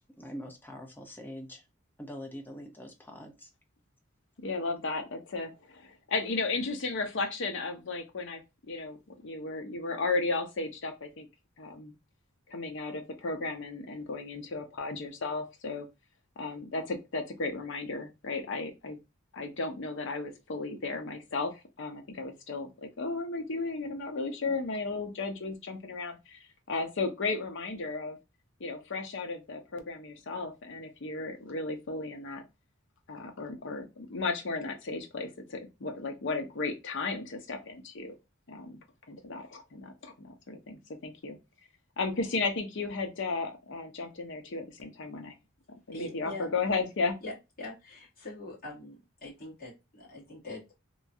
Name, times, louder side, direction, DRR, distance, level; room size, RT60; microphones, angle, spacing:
voice 1, 0.2-1.6 2.0-3.5, equal, 10° left, 0.6 m, -43 dB
voice 2, 4.4-9.0 9.2-11.3 11.6-11.9 12.5-15.9 16.4-19.0 19.3-26.4 26.7-28.2 28.6-32.4 33.1-38.2 38.5-38.8 39.1-41.4 42.0-45.3 45.9-47.2, left 3 dB, 60° left, 0.6 m, -34 dB
voice 3, 45.9-46.5 47.2-47.3 47.6-50.8, left 2 dB, 45° left, 1.6 m, -43 dB
3.0 x 2.3 x 2.6 m
head